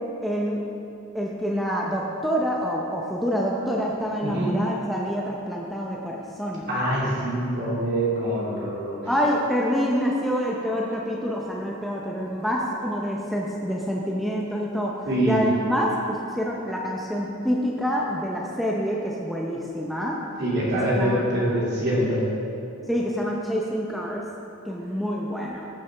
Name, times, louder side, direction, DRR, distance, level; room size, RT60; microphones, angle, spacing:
voice 1, 0.2-0.6 1.1-6.6 9.1-15.0 15.2-20.2 20.9-21.5 22.9-24.3 24.7-25.7, equal, ahead, -3 dB, 0.6 m, -27 dB
voice 2, 6.7-9.0 15.1-15.4 20.4-22.3, right 1 dB, 50° right, -7 dB, 2.5 m, -24 dB
14.5 x 6.8 x 3.4 m, 2.7 s
head